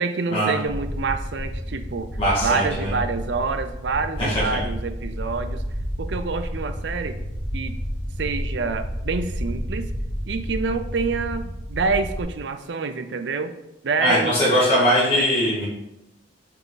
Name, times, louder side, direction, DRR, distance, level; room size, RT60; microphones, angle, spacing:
voice 1, 0.0-2.1 2.4-5.6 6.0-7.2 7.5-7.8 8.2-9.9 10.3-13.5 13.8-14.4 15.1-15.2, right 4 dB, 70° right, 9 dB, 0.5 m, -27 dB
sound 1, 0.6-12.2, equal, 70° left, 1.4 m, -31 dB
voice 2, 2.2-2.9 4.2-4.4 14.0-15.6, equal, 30° left, -10 dB, 2.1 m, -20 dB
5.7 x 4.9 x 4.0 m, 0.90 s
head